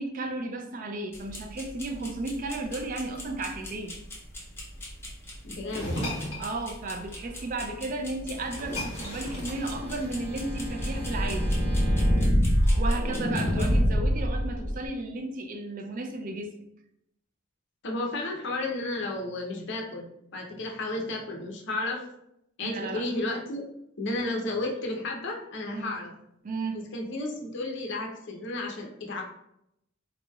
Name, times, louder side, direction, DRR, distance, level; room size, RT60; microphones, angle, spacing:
voice 1, 0.0-4.0 6.4-11.5 12.8-16.5 20.5-20.6 22.6-23.2 25.7-25.9 26.4-26.8, right 2 dB, 40° right, 5 dB, 0.4 m, -34 dB
sound 1, 1.1-13.8, left 1 dB, 10° left, 0.5 m, -43 dB
voice 2, 5.4-6.0 13.4-14.0 17.8-22.0 22.6-23.7 24.0-26.1 26.7-29.2, left 2 dB, 60° left, 0 dB, 0.6 m, -33 dB
sound 2, 5.7-6.5 7.9-8.0 8.3-10.3, left 1 dB, 30° left, 1.2 m, -35 dB
sound 3, 8.5-14.9, equal, 15° right, 1.2 m, -26 dB
3.9 x 3.0 x 2.3 m, 0.79 s
head